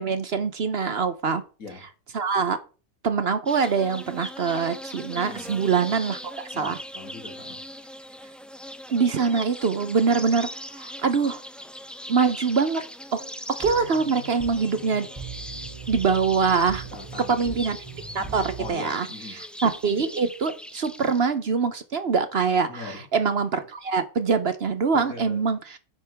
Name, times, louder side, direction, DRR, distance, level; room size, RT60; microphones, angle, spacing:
voice 1, 0.0-1.4 2.1-2.6 3.0-6.8 8.9-10.5 10.8-11.4 12.1-12.8 13.1-13.2 13.6-15.1 15.9-16.8 17.3-17.8 18.1-19.1 19.6-25.8, right 5 dB, 50° right, 1.0 m, -24 dB
sound 1, 3.5-21.2, equal, ahead, 0.4 m, -40 dB
voice 2, 5.2-5.6 6.5-7.6 16.9-17.6 18.2-19.4 22.7-23.1 24.9-25.4, left 3 dB, 80° left, 3.1 m, -41 dB
sound 2, 13.6-18.7, right 5 dB, 20° right, 5.4 m, -40 dB
10.5 x 8.6 x 3.5 m
omnidirectional pair, 1.5 m